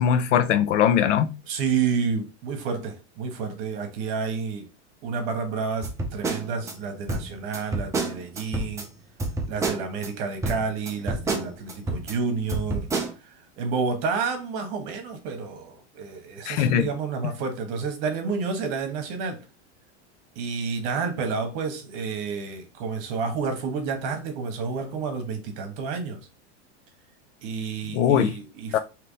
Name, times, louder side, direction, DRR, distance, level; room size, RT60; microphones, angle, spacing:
voice 1, 0.0-1.3 16.5-16.9 27.9-28.4 28.7-28.8, left 9 dB, 85° left, 0.7 m, -20 dB
voice 2, 1.5-4.7 5.0-8.9 9.5-12.9 13.2-19.4 20.3-26.3 27.4-28.8, right 5 dB, 50° right, 1.2 m, -30 dB
sound 1, 5.8-6.7 7.1-8.9 9.2-10.1 10.4-12.1 12.5-13.1, right 3 dB, 10° right, 0.5 m, -29 dB
3.4 x 3.0 x 3.9 m
supercardioid pair, 155°, 35 cm